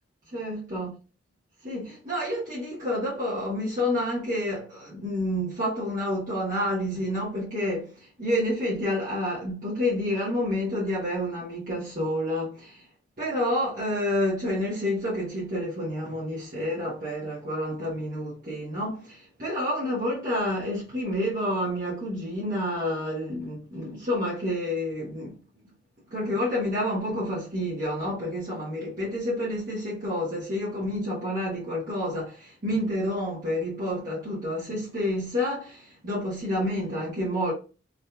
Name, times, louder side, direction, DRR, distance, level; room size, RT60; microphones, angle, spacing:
voice 1, 0.3-0.9 1.6-12.8 13.2-25.3 26.1-37.5, left 1 dB, 45° right, 1.4 m, -29 dB
3.7 x 3.1 x 2.3 m
head